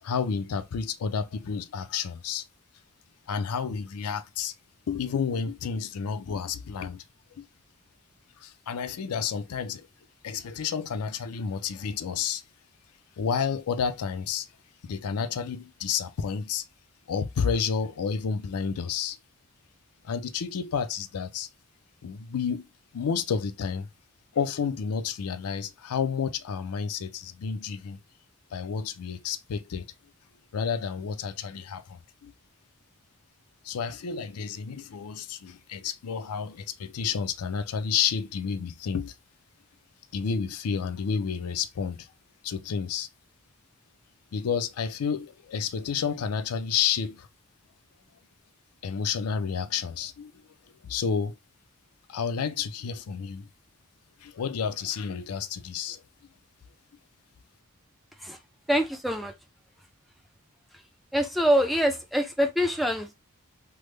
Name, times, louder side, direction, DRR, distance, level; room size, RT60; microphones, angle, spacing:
voice 1, 0.0-2.4 3.3-4.5 4.9-7.0 7.3-7.5 8.4-9.9 10.2-12.4 13.2-14.5 14.8-16.6 17.1-19.2 20.0-21.5 22.0-22.7 22.9-23.9 24.3-28.0 28.5-29.8 30.5-32.3 33.6-39.2 40.1-42.1 42.4-43.1 44.3-47.3 48.8-50.3 50.8-51.4 52.1-53.5 54.2-56.0, left 6 dB, 85° left, 0.4 m, -30 dB
voice 2, 58.7-59.3 61.1-63.1, equal, ahead, 0.3 m, -25 dB
3.3 x 2.1 x 3.1 m
head